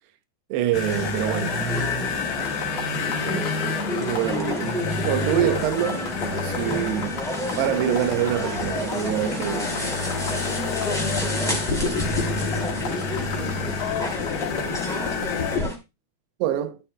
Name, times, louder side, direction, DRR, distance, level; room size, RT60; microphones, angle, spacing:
voice 1, 0.5-1.6 3.2-3.6 3.9-7.2 7.6-9.7 16.4-16.8, right 12 dB, 85° right, 2.9 m, -26 dB
sound 1, 0.7-15.6, left 4 dB, 60° left, 2.7 m, -30 dB
sound 2, 0.8-15.7, left 1 dB, 5° left, 0.5 m, -31 dB
sound 3, 2.3-15.7, left 3 dB, 40° left, 2.6 m, -33 dB
voice 2, 10.7-15.7, left 12 dB, 80° left, 3.0 m, -36 dB
11.0 x 8.5 x 2.2 m
omnidirectional pair, 4.7 m